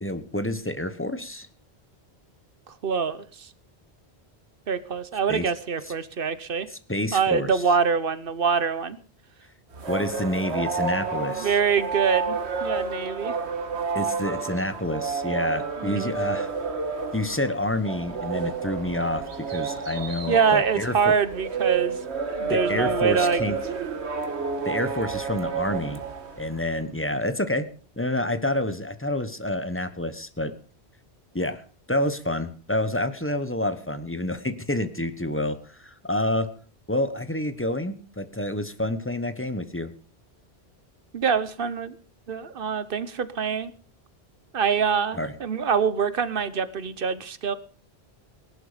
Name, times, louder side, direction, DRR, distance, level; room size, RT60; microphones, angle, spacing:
voice 1, 0.0-1.5 5.3-5.5 6.7-7.6 9.9-11.5 13.9-16.5 17.1-21.1 22.5-23.6 24.6-26.0 26.4-27.7 28.0-30.5 31.3-31.6 31.9-36.5 36.9-39.9 45.1-45.3, left 1 dB, 10° left, 11 dB, 1.1 m, -28 dB
voice 2, 2.7-3.5 4.7-6.7 7.1-9.0 11.2-13.4 15.8-16.1 20.3-22.0 22.3-23.4 41.1-42.0 42.3-43.7 44.5-47.5, right 6 dB, 55° right, 15 dB, 1.2 m, -25 dB
sound 1, 9.7-26.7, right 5 dB, 80° right, 1.8 m, -30 dB
18.5 x 11.5 x 5.1 m, 0.42 s
omnidirectional pair, 1.1 m